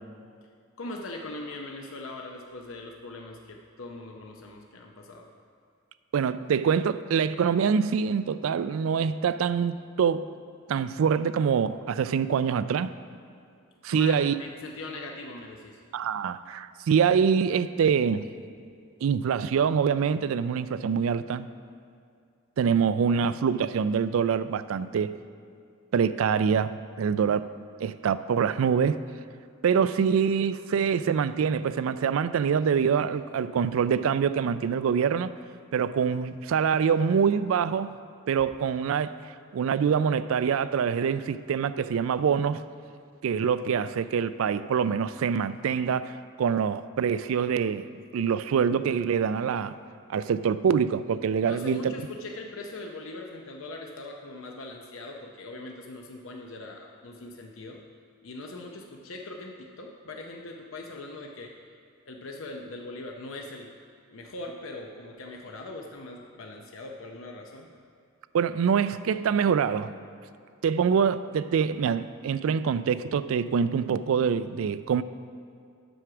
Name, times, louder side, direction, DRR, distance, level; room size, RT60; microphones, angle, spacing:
voice 1, 0.8-5.3 13.9-15.8 51.4-57.8 58.2-61.5 62.1-63.7 64.1-67.7, left 2 dB, 75° left, 1 dB, 0.7 m, -41 dB
voice 2, 6.1-10.3 10.7-12.9 13.8-14.3 15.9-18.2 19.0-21.5 22.6-25.2 25.9-27.5 27.8-29.0 29.6-35.3 35.7-37.9 38.3-39.1 39.5-42.6 43.2-46.1 46.4-47.9 48.1-49.8 50.1-51.9 68.3-69.9 70.6-75.0, right 7 dB, 75° right, 14 dB, 0.3 m, -25 dB
7.8 x 6.1 x 5.8 m, 2.4 s
head